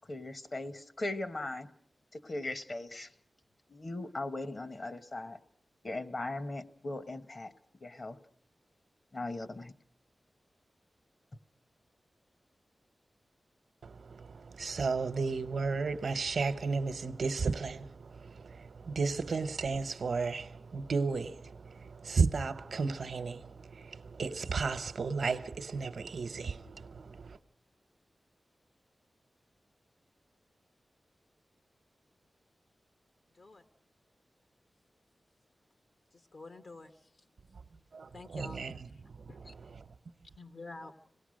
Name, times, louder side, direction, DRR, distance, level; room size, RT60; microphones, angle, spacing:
voice 1, 0.1-1.7 2.1-3.1 3.7-5.4 5.8-7.5 7.8-8.2 9.1-9.7, left 2 dB, 45° left, 1.1 m, -39 dB
voice 2, 13.8-27.4 37.5-37.6 37.9-39.8, right 4 dB, 80° right, 0.9 m, -34 dB
voice 3, 36.3-36.9 38.1-38.7 39.3-39.5 40.4-40.9, left 3 dB, 65° left, 1.2 m, -48 dB
26.0 x 18.0 x 6.4 m
wide cardioid pair, 100°, 0 cm